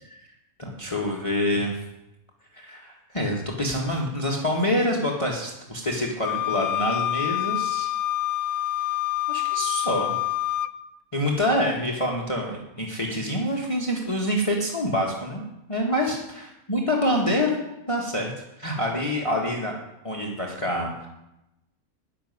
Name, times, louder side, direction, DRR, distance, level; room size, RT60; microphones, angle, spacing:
voice 1, 0.6-1.8 2.5-7.9 9.3-10.1 11.1-15.4 15.7-16.2 16.7-17.6 17.9-18.3 18.6-19.7 20.0-21.1, left 1 dB, 25° left, -1 dB, 1.6 m, -26 dB
Wind instrument woodwind instrument, 6.2-10.7, left 14 dB, 90° left, 1.1 m, -27 dB
13.0 x 6.3 x 9.6 m, 0.91 s
omnidirectional pair, 1.5 m